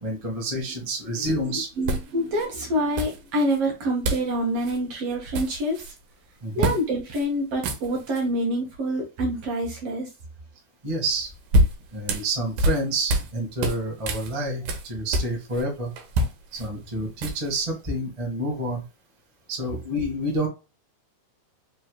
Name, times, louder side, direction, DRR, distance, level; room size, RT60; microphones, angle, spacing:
voice 1, 0.0-1.7 6.4-6.8 10.8-11.3 11.9-15.9 16.5-18.8 19.5-20.5, right 1 dB, 30° right, -2 dB, 0.6 m, -28 dB
voice 2, 1.2-5.9 6.6-10.1, equal, 60° right, 1 dB, 1.8 m, -27 dB
sound 1, 1.2-1.3 1.9-2.5 3.0-3.6 4.0-4.3 4.6-4.8 5.1-6.0 6.6-6.8 7.1-7.3 7.5-8.2 11.1-13.3 13.6-15.6 16.0-17.6, right 1 dB, 85° right, 2.5 m, -26 dB
5.4 x 3.2 x 2.3 m, 0.29 s
omnidirectional pair, 3.7 m